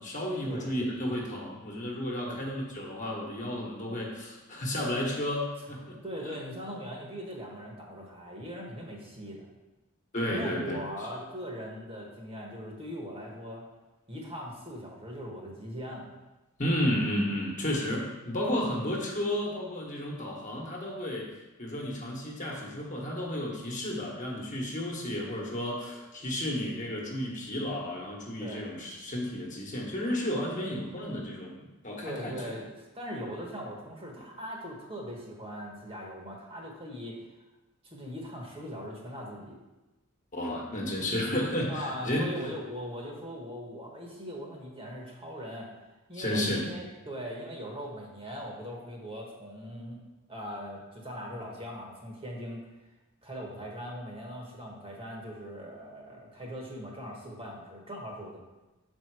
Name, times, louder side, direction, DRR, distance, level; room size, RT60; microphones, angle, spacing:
voice 1, 0.0-6.0 10.1-10.8 16.6-21.3 21.6-32.5 40.3-42.5 46.1-46.7, left 1 dB, 35° left, -2 dB, 1.3 m, -32 dB
voice 2, 6.0-9.5 10.3-13.6 14.1-16.1 18.6-18.9 28.4-28.7 32.0-37.2 37.9-39.6 41.7-45.7 46.1-50.0 50.3-52.6 53.2-58.4, equal, 25° right, -2 dB, 1.2 m, -40 dB
7.0 x 4.5 x 4.7 m, 1.1 s
head